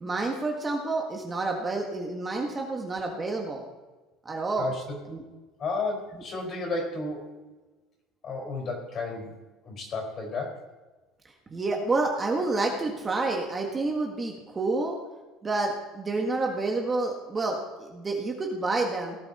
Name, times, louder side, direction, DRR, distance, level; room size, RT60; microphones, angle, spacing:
voice 1, 0.0-3.6 4.3-4.7 5.1-5.2 11.5-15.0 15.4-19.2, right 3 dB, 20° right, 1 dB, 1.7 m, -29 dB
voice 2, 4.6-5.0 5.6-7.3 8.2-9.3 9.6-10.6, left 3 dB, 40° left, 3 dB, 4.9 m, -32 dB
18.0 x 8.8 x 4.3 m, 1.2 s
cardioid pair, 135°, 0 cm